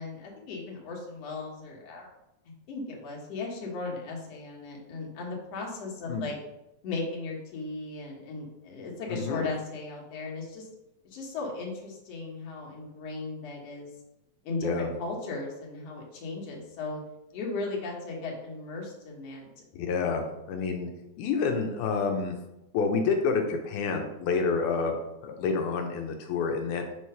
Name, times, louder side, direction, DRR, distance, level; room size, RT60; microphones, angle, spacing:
voice 1, 0.0-2.1 2.7-6.4 6.8-10.7 11.0-13.9 14.4-17.0 17.3-19.5, left 3 dB, 60° left, -2 dB, 2.3 m, -36 dB
voice 2, 19.7-20.9 21.2-22.4 22.7-26.8, left 5 dB, 90° left, 3 dB, 2.2 m, -28 dB
6.5 x 3.2 x 5.5 m, 0.91 s
omnidirectional pair, 3.5 m